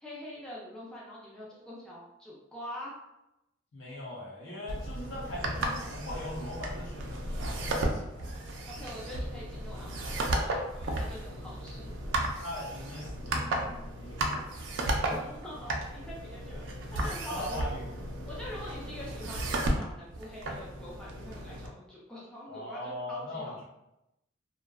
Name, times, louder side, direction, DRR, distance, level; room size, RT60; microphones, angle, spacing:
voice 1, 0.0-2.9 8.7-12.0 15.0-16.7 16.9-17.6 18.3-23.6, left 1 dB, 5° left, -6 dB, 0.4 m, -44 dB
voice 2, 3.7-8.3 12.4-15.3 17.3-17.9 22.5-23.6, left 1 dB, 80° left, -4 dB, 0.8 m, -41 dB
sound 1, 4.7-21.7, right 1 dB, 70° right, 0.4 m, -34 dB
2.5 x 2.1 x 2.2 m, 0.89 s
head